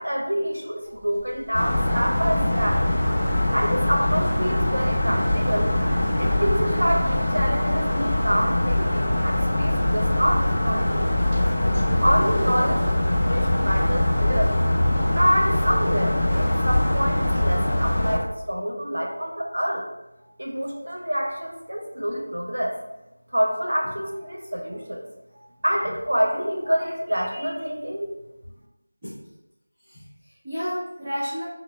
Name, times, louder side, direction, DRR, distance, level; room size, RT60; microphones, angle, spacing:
voice 1, 0.0-2.8 3.5-5.7 6.2-11.4 12.0-14.6 15.1-19.9 20.4-22.8 23.3-25.1 25.3-28.1, equal, 80° right, 0 dB, 0.6 m, -27 dB
Sliding door, 0.8-11.4, equal, 40° right, 1.2 m, -37 dB
sound 1, 1.5-18.2, left 1 dB, 40° left, 0.5 m, -22 dB
voice 2, 29.8-31.4, equal, 15° right, -15 dB, 0.8 m, -32 dB
4.0 x 2.0 x 2.2 m, 0.95 s
figure-of-eight pair, 175°, 0 cm